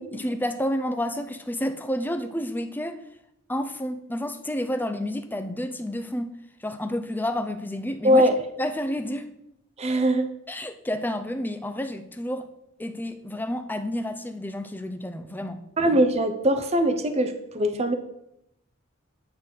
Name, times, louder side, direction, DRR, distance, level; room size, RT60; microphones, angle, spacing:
voice 1, 0.1-3.0 3.5-6.3 6.6-8.3 8.6-9.3 10.5-12.5 12.8-15.6, left 1 dB, 10° left, 8 dB, 0.6 m, -30 dB
voice 2, 8.0-8.4 9.8-10.3 15.8-17.9, equal, 30° right, 7 dB, 0.7 m, -21 dB
9.6 x 4.1 x 6.5 m, 0.80 s
head